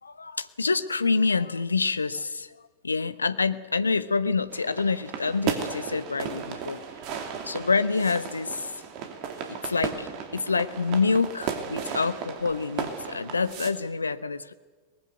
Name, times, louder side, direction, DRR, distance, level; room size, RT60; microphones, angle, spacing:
voice 1, 0.0-2.5 2.8-6.8 7.4-8.7 9.5-14.5, left 4 dB, 75° left, 14 dB, 0.9 m, -27 dB
sound 1, 4.5-13.7, right 7 dB, 40° right, 2.7 m, -35 dB
22.0 x 19.5 x 8.1 m, 1.4 s
figure-of-eight pair, 90°, 0 cm